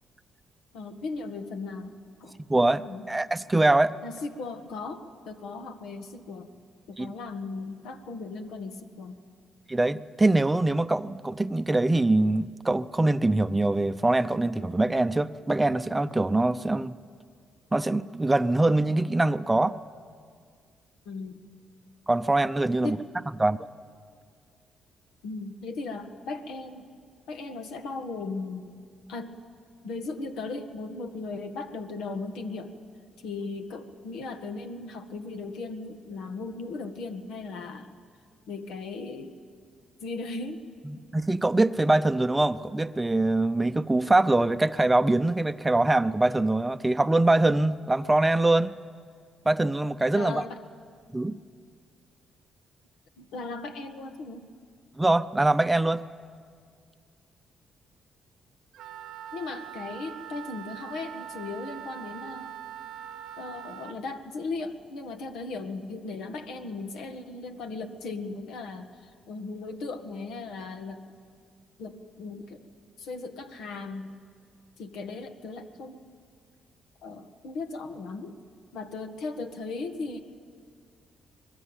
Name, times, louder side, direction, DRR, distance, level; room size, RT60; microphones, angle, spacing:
voice 1, 0.7-2.0 2.2-2.4 2.8-3.0 4.0-6.5 6.9-9.2 21.1-21.4 22.8-23.0 25.2-26.9 27.3-28.7 29.1-29.3 29.8-32.7 33.2-37.9 38.5-39.4 40.0-40.7 50.2-50.6 53.2-54.5 59.3-62.5 63.4-71.0 71.8-72.6 73.0-74.1 74.8-76.1 77.0-78.4 78.7-80.2, left 3 dB, 85° left, 6 dB, 1.8 m, -37 dB
voice 2, 2.5-3.9 7.0-7.1 9.7-17.0 17.7-19.8 22.1-23.0 23.4-23.6 40.9-48.8 49.5-50.4 51.1-51.4 55.0-56.0, right 2 dB, 15° right, 12 dB, 0.6 m, -23 dB
Wind instrument woodwind instrument, 58.7-64.0, right 11 dB, 75° right, 0.8 m, -42 dB
24.5 x 20.5 x 8.9 m, 2.1 s
cardioid pair, 90°, 0 cm